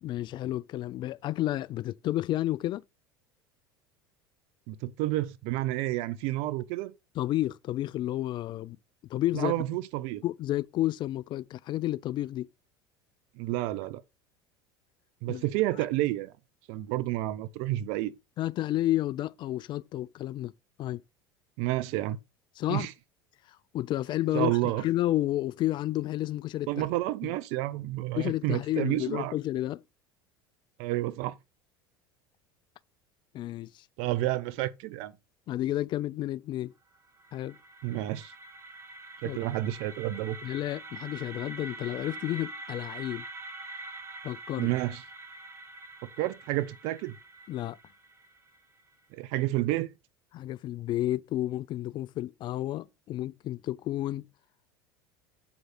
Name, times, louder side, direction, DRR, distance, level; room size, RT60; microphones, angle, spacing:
voice 1, 0.0-2.8 7.2-8.8 9.1-9.7 10.2-12.5 15.3-15.4 18.4-20.5 20.8-21.0 22.6-22.9 23.7-26.9 27.2-27.4 28.2-29.8 33.3-33.8 35.5-36.7 37.3-37.6 39.2-39.4 40.4-43.2 44.2-44.7 47.5-47.8 50.3-54.3, left 14 dB, 40° left, 0.4 m, -31 dB
voice 2, 4.7-6.9 9.3-10.2 13.4-14.0 15.2-16.3 16.7-18.1 21.6-22.2 22.7-22.9 24.3-24.8 26.7-29.3 30.8-31.3 34.0-35.1 37.8-38.3 39.2-40.4 44.6-45.0 46.2-47.2 49.1-49.9, right 16 dB, 60° right, 0.6 m, -30 dB
sound 1, 36.9-48.9, right 2 dB, 20° right, 1.2 m, -45 dB
7.4 x 4.8 x 4.2 m
hypercardioid pair, 75°, 12 cm